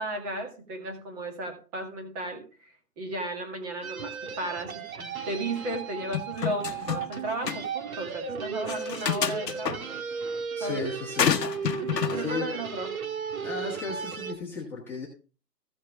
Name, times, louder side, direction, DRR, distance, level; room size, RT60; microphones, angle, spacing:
voice 1, 0.0-2.4 3.0-9.9 10.6-10.9 12.1-12.9, right 1 dB, 25° right, 3 dB, 2.0 m, -34 dB
sound 1, 3.8-14.3, right 6 dB, 60° right, 2.0 m, -35 dB
sound 2, 6.1-7.2 7.5-7.6 8.7-9.8 11.2-12.2, left 8 dB, 80° left, 1.1 m, -28 dB
voice 2, 10.5-11.3 12.1-12.5 13.4-15.1, left 4 dB, 5° left, -6 dB, 1.6 m, -35 dB
14.5 x 6.5 x 3.6 m, 0.35 s
hypercardioid pair, 160°, 49 cm